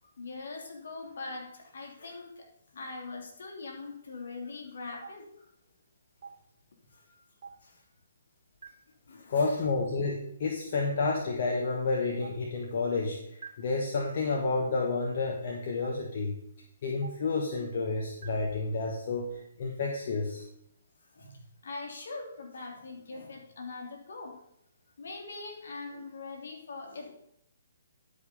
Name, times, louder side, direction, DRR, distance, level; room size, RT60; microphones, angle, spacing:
voice 1, 0.2-2.5 2.7-5.5 6.9-7.2 7.6-7.8 9.1-9.6 21.1-24.4 25.0-27.1, left 3 dB, 65° left, 1 dB, 2.9 m, -42 dB
Stream, 5.0-5.1 6.2-6.3 7.4-7.5 8.6-8.7 9.8-9.9 11.0-11.1 12.2-12.3 13.4-13.5 14.6-14.7 15.8-15.9 17.0-17.1 18.2-18.3, right 6 dB, 60° right, 2.6 m, -42 dB
voice 2, 9.3-16.3 16.8-20.4, left 3 dB, 50° left, 0 dB, 1.4 m, -30 dB
11.0 x 5.2 x 5.4 m, 0.76 s
hypercardioid pair, 145°, 0 cm